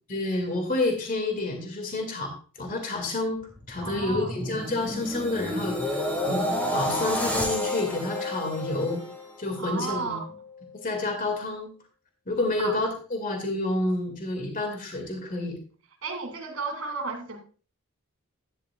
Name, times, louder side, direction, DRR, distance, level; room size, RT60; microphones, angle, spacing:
voice 1, 0.1-2.3 2.6-3.4 3.7-9.0 9.4-10.2 10.8-11.7 12.3-15.6, left 2 dB, 40° left, 3 dB, 2.1 m, -29 dB
sound 1, 3.4-9.7 10.1-10.4, left 1 dB, 10° left, 1.9 m, -30 dB
voice 2, 3.8-4.3 9.6-10.2 12.6-12.8 16.0-17.4, right 4 dB, 80° right, 2 dB, 2.8 m, -33 dB
12.0 x 10.5 x 2.3 m, 0.37 s
head